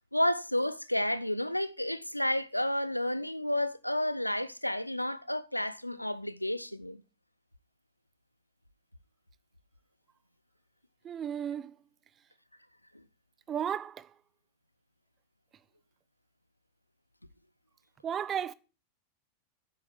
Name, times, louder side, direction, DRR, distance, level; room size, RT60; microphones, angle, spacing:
voice 1, 0.1-7.0, left 1 dB, 90° left, 0.7 m, -31 dB
voice 2, 11.0-11.8 13.5-14.1 18.0-18.5, right 9 dB, 25° right, 0.7 m, -34 dB
9.9 x 7.9 x 7.2 m
figure-of-eight pair, 90°, 0 cm